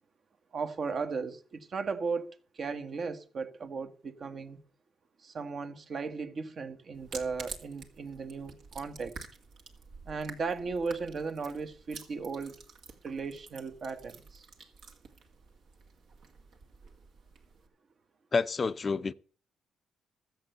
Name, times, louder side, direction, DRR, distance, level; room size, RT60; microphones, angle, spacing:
voice 1, 0.5-4.6 5.2-9.1 10.1-12.6 13.0-14.4, right 4 dB, 50° right, 1.2 m, -36 dB
sound 1, 6.9-17.7, right 4 dB, 75° right, 2.1 m, -49 dB
voice 2, 18.3-19.1, left 4 dB, 35° left, 0.5 m, -28 dB
13.5 x 7.8 x 6.6 m
cardioid pair, 90°, 0 cm